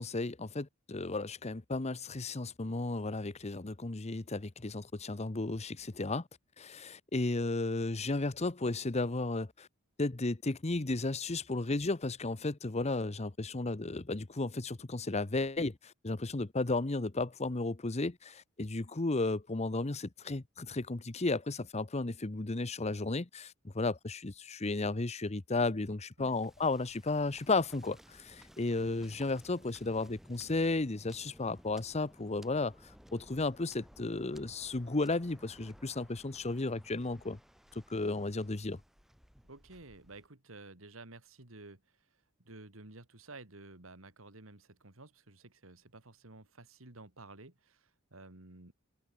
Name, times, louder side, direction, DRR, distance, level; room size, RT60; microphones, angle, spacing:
voice 1, 0.0-6.2 6.6-9.7 10.0-32.7 33.1-37.4 37.9-38.8, left 2 dB, 35° left, 0.9 m, -34 dB
Waves surf, 26.3-40.3, equal, ahead, 7.3 m, -58 dB
voice 2, 39.5-41.8 42.4-48.7, right 2 dB, 85° right, 2.8 m, -52 dB
head